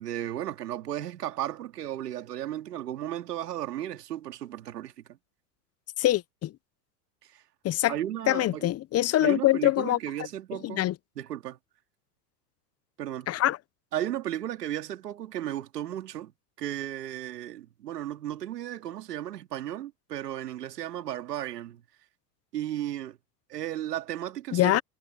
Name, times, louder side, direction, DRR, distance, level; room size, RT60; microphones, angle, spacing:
voice 1, 0.0-5.2 7.3-7.4 7.9-8.7 9.2-10.9 11.2-11.6 13.0-13.3 13.9-16.3 16.6-21.8 22.5-23.2 23.5-24.8, right 12 dB, 85° right, 2.8 m, -34 dB
voice 2, 6.0-6.5 7.6-7.9 8.3-10.0 10.6-10.9 13.3-13.6 24.5-24.8, left 14 dB, 30° left, 0.9 m, -24 dB
hypercardioid pair, 105°, 47 cm